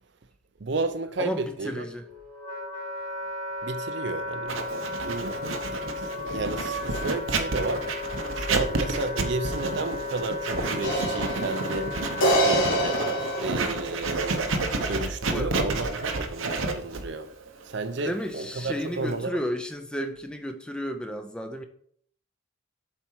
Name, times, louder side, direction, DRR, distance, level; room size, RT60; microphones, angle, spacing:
voice 1, 0.6-1.9 3.6-4.7 5.1-5.4 6.3-8.1 8.3-13.1 13.4-17.3 17.6-19.4, right 3 dB, 60° right, 0.6 m, -32 dB
voice 2, 1.2-2.1 15.3-15.8 18.0-21.6, equal, 5° left, 0.5 m, -33 dB
Wind instrument woodwind instrument, 1.8-13.4, left 2 dB, 30° left, 2.4 m, -35 dB
Writing, 4.5-19.2, right 3 dB, 80° right, 0.9 m, -30 dB
sound 1, 10.8-14.2, right 1 dB, 75° left, 1.6 m, -26 dB
7.4 x 4.3 x 4.6 m
head